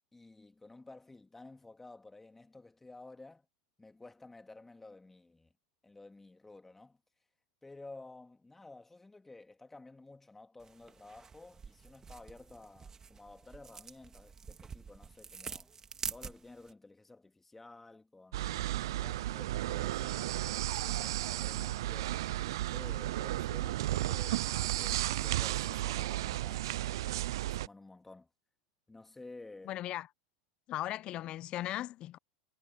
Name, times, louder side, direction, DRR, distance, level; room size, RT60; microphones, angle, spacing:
voice 1, 0.1-3.5 3.8-5.5 5.8-7.0 7.6-15.7 16.1-18.7 19.0-22.3 22.7-24.4 24.8-28.3 28.9-29.8, left 2 dB, 10° left, 2.6 m, -53 dB
sound 1, 10.6-16.7, right 6 dB, 20° right, 2.1 m, -46 dB
sound 2, 18.3-27.7, right 15 dB, 75° right, 0.3 m, -34 dB
voice 2, 29.6-30.1 30.7-32.2, left 14 dB, 45° left, 0.8 m, -37 dB
hypercardioid pair, 105°, 2 cm